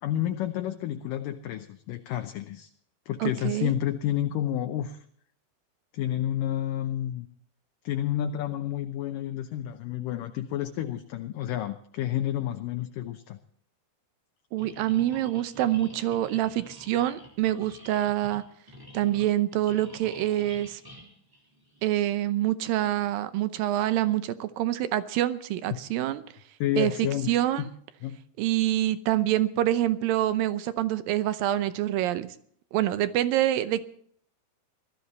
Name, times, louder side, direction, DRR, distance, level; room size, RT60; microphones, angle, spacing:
voice 1, 0.0-2.7 3.1-5.0 5.9-7.3 7.8-13.4 25.7-25.8 26.6-27.7 28.0-28.2, left 12 dB, 75° left, 6 dB, 2.1 m, -30 dB
voice 2, 3.2-3.7 14.5-18.4 18.9-20.8 21.8-26.2 26.8-26.9 27.3-27.6 28.4-32.4 32.7-33.8, right 13 dB, 75° right, 13 dB, 2.3 m, -26 dB
sound 1, 14.6-22.0, equal, 5° right, 2.3 m, -48 dB
20.0 x 13.5 x 4.1 m, 0.62 s
omnidirectional pair, 4.7 m